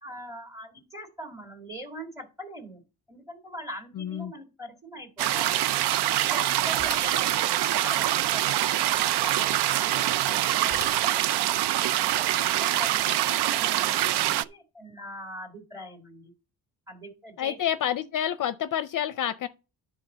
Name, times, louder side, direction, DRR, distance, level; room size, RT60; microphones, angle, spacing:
voice 1, 0.0-5.6 6.2-13.3 13.6-16.3 16.9-17.6, equal, 10° right, 2.1 m, -42 dB
voice 2, 4.0-4.3 17.4-19.5, left 10 dB, 55° left, 0.5 m, -28 dB
sound 1, 5.2-14.4, right 13 dB, 85° right, 0.5 m, -25 dB
Bicycle / Mechanisms, 6.8-7.8 10.7-11.6, right 2 dB, 40° right, 2.0 m, -39 dB
10.0 x 3.9 x 6.7 m
cardioid pair, 125°, 39 cm